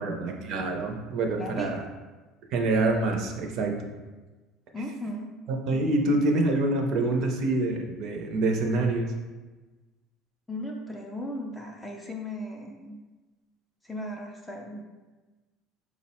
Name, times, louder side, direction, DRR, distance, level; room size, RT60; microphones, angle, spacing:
voice 1, 0.0-1.8 2.5-3.8 5.5-9.1, right 2 dB, 45° right, 3 dB, 0.5 m, -26 dB
voice 2, 1.4-1.9 4.7-5.3 10.5-13.0 13.8-14.8, left 1 dB, 5° left, 0 dB, 0.3 m, -37 dB
4.9 x 2.0 x 4.1 m, 1.2 s
cardioid pair, 170°, 0 cm